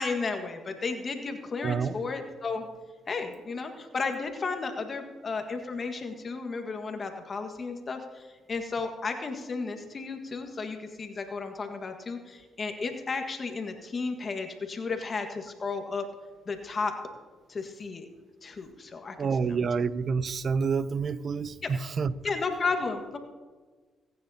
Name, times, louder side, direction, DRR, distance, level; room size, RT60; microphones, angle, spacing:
voice 1, 0.0-2.7 3.1-16.1 16.5-16.9 17.5-18.1 18.4-19.6 22.2-23.2, left 4 dB, 45° left, 5 dB, 1.6 m, -33 dB
voice 2, 1.6-2.0 19.2-22.1, right 5 dB, 50° right, 16 dB, 0.6 m, -28 dB
24.5 x 9.5 x 2.9 m, 1.4 s
hypercardioid pair, 55°, 0 cm